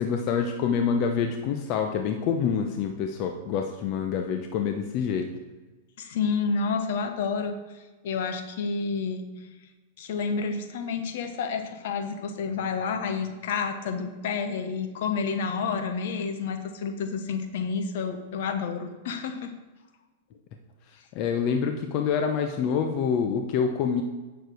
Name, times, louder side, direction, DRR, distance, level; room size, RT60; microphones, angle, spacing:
voice 1, 0.0-5.3 21.1-24.0, left 6 dB, 45° left, 5 dB, 0.8 m, -26 dB
voice 2, 6.0-7.5 8.0-9.4 10.0-19.5, left 5 dB, 65° left, 8 dB, 1.1 m, -29 dB
9.1 x 6.8 x 4.6 m, 1.2 s
hypercardioid pair, 120°, 0 cm